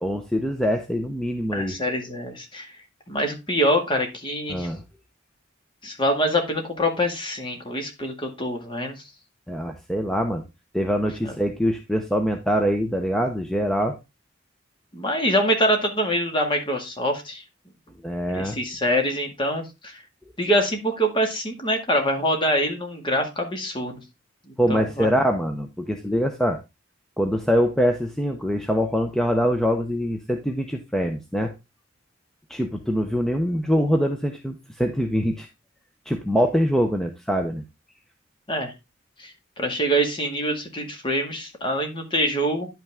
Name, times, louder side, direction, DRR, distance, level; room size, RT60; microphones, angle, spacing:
voice 1, 0.0-1.7 4.5-4.8 9.5-10.4 10.7-14.0 18.0-18.6 24.6-26.6 27.2-31.5 32.5-35.5 36.1-37.6, equal, 5° left, 4 dB, 0.7 m, -24 dB
voice 2, 1.5-2.7 3.1-4.7 5.8-9.0 11.3-11.4 14.9-17.4 18.3-20.0 20.4-24.0 24.7-25.1 38.5-38.7 39.2-39.3 39.6-42.7, equal, 25° left, 3 dB, 2.1 m, -25 dB
10.5 x 5.7 x 3.6 m, 0.24 s
head